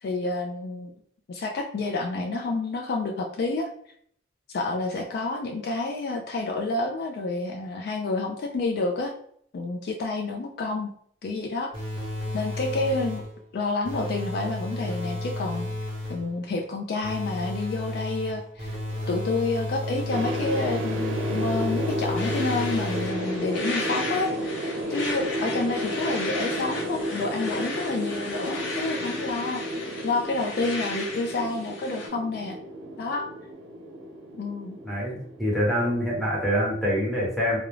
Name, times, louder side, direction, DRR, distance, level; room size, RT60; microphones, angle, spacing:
voice 1, 0.0-0.9 1.3-3.7 4.5-9.1 9.5-10.9 11.2-11.7 12.3-13.3 13.5-15.7 16.1-18.7 19.1-24.5 24.9-32.6 33.0-33.2 34.4-34.8, left 3 dB, 60° left, 2 dB, 0.3 m, -29 dB
sound 1, 11.7-13.4 13.8-16.3 17.0-23.4, left 1 dB, 30° right, 0.8 m, -32 dB
sound 2, 20.1-36.2, equal, 85° right, 0.5 m, -32 dB
sound 3, 22.1-32.1, left 3 dB, 90° left, 0.6 m, -36 dB
voice 2, 34.8-37.6, equal, ahead, -5 dB, 0.9 m, -25 dB
2.4 x 2.0 x 3.0 m, 0.63 s
head